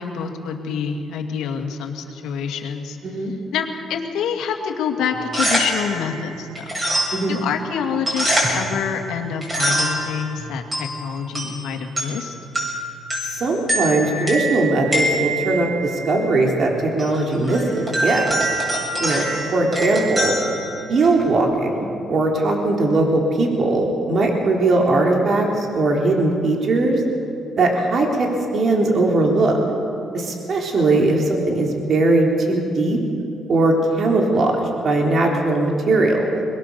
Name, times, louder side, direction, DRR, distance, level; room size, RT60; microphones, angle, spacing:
voice 1, 0.0-3.0 3.5-6.7 7.3-12.3 30.8-31.1, left 7 dB, 85° left, 3 dB, 2.3 m, -27 dB
voice 2, 3.0-3.3 7.1-7.4 13.2-18.3 19.0-19.3 19.5-20.4 20.9-27.0 27.6-29.6 30.1-33.0 33.5-36.4, right 2 dB, 55° right, 0 dB, 3.8 m, -19 dB
sound 1, 5.1-21.4, right 1 dB, 25° right, 7.4 m, -26 dB
23.0 x 20.5 x 6.9 m, 2.7 s
cardioid pair, 90°, 0 cm